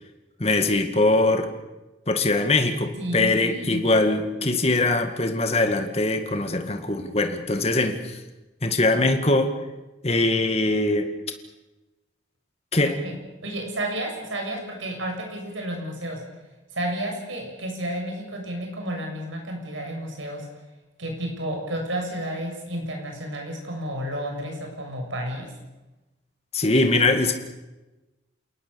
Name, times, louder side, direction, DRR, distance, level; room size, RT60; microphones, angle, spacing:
voice 1, 0.4-1.5 2.1-8.2 8.6-9.5 10.0-11.1 12.7-13.0 26.5-27.3, left 2 dB, 30° left, 6 dB, 2.1 m, -22 dB
voice 2, 3.0-3.8 13.0-16.2 16.7-20.4 21.0-25.5, right 1 dB, 80° right, 2 dB, 7.3 m, -31 dB
28.5 x 18.5 x 7.1 m, 1.1 s
head